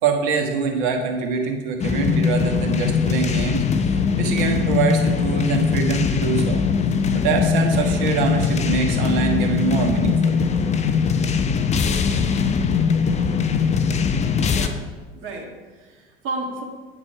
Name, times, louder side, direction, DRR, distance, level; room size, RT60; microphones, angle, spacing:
voice 1, 0.0-6.6 7.1-10.4, right 5 dB, 60° right, 3 dB, 1.5 m, -24 dB
sound 1, 1.8-14.7, left 6 dB, 20° left, 0.6 m, -21 dB
voice 2, 14.5-14.8 15.1-16.6, right 2 dB, 45° right, 1 dB, 1.9 m, -33 dB
9.1 x 6.0 x 4.7 m, 1.3 s
figure-of-eight pair, 75°, 30 cm